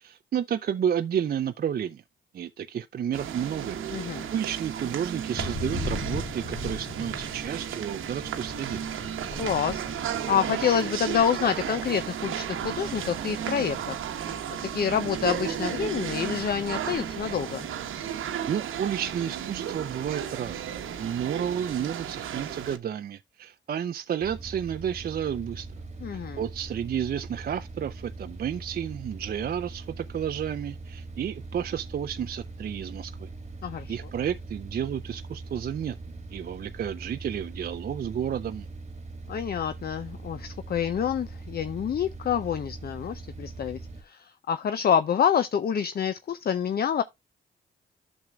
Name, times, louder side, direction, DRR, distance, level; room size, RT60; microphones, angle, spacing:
voice 1, 0.0-2.0 2.3-8.8 18.5-20.6 21.0-25.7 26.1-33.3 33.9-36.0 36.3-38.7, right 9 dB, 50° right, 0.4 m, -31 dB
sound 1, 3.1-22.8, right 9 dB, 85° right, 1.0 m, -34 dB
voice 2, 3.9-4.3 9.4-14.0 14.5-17.7 26.0-26.4 33.6-34.0 39.3-43.8 44.1-47.0, left 8 dB, 50° left, 0.5 m, -27 dB
Thunder, 5.3-18.2 18.5-19.1 19.4-20.9, left 2 dB, 80° left, 3.2 m, -41 dB
sound 2, 24.2-44.0, right 3 dB, 35° right, 1.4 m, -41 dB
10.5 x 6.3 x 2.3 m
cardioid pair, 70°, 20 cm